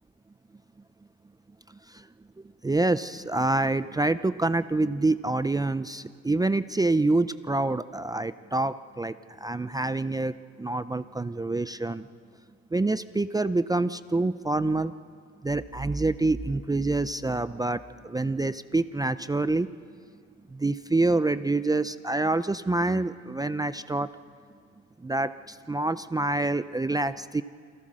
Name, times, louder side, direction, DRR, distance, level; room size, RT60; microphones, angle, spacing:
voice 1, 2.6-9.1 9.4-10.3 10.6-12.1 12.7-14.9 15.4-19.7 20.6-24.1 25.0-25.3 25.7-27.4, right 2 dB, 15° right, 13 dB, 0.5 m, -26 dB
sound 1, 15.5-18.3, right 2 dB, 40° right, 1.9 m, -41 dB
28.0 x 16.0 x 6.3 m, 2.1 s
cardioid pair, 90°, 30 cm